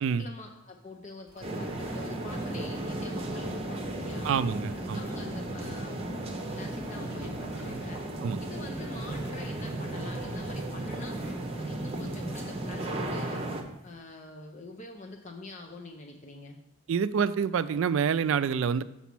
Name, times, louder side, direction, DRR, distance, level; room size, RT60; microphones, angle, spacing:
voice 1, 0.2-4.3 4.8-6.0 6.4-8.0 8.4-11.2 11.6-13.4 13.8-16.6, left 2 dB, 35° left, 2 dB, 0.6 m, -45 dB
sound 1, 1.3-13.9, right 1 dB, 10° right, 2.6 m, -54 dB
sound 2, 1.4-13.6, right 1 dB, 30° right, 0.8 m, -35 dB
voice 2, 4.2-5.1 8.2-8.4 16.9-18.8, right 6 dB, 65° right, 14 dB, 0.3 m, -27 dB
7.0 x 4.1 x 6.0 m, 0.90 s
head